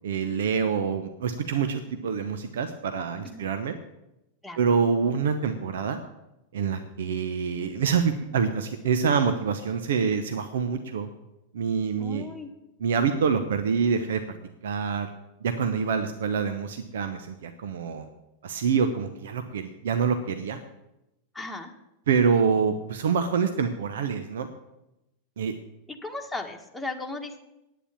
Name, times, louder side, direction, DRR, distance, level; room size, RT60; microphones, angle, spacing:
voice 1, 0.0-3.7 4.6-6.0 6.5-11.1 11.5-12.3 12.8-14.2 14.6-15.1 15.4-18.1 18.4-20.6 22.1-24.5 25.4-25.6, right 6 dB, 60° right, 9 dB, 0.9 m, -26 dB
voice 2, 12.0-12.5 21.3-21.7 25.9-27.4, left 2 dB, 5° left, 0 dB, 1.8 m, -36 dB
10.0 x 9.2 x 8.7 m, 0.91 s
figure-of-eight pair, 90°, 0 cm